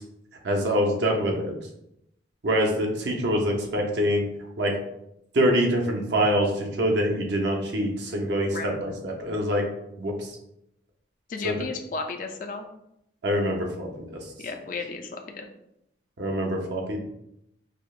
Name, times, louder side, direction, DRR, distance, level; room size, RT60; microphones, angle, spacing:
voice 1, 0.4-1.5 2.4-4.2 4.6-4.7 5.3-9.6 10.0-10.1 11.4-11.5 13.2-13.9 16.2-17.0, equal, 75° right, 1 dB, 0.6 m, -25 dB
voice 2, 8.5-8.8 11.3-12.7 14.4-15.5, left 4 dB, 45° left, 4 dB, 0.3 m, -34 dB
4.9 x 2.0 x 2.3 m, 0.80 s
head